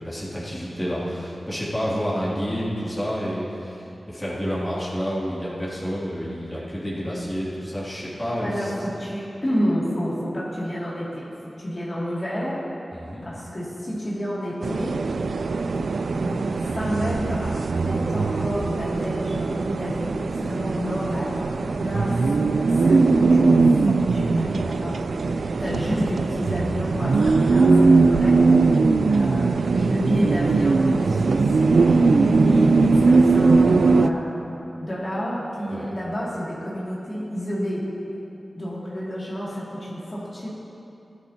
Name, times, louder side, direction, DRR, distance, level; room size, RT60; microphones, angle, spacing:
voice 1, 0.0-8.7 12.9-13.2 29.0-29.3 35.7-35.9, equal, 10° left, -8 dB, 2.6 m, -29 dB
voice 2, 8.4-12.6 13.2-15.0 16.1-22.3 22.6-25.2 25.6-37.9 38.5-40.5, equal, 35° left, -8 dB, 2.5 m, -30 dB
sound 1, 14.6-34.1, right 3 dB, 80° right, 0.3 m, -20 dB
16.0 x 10.5 x 2.9 m, 2.8 s
wide cardioid pair, 85°, 0 cm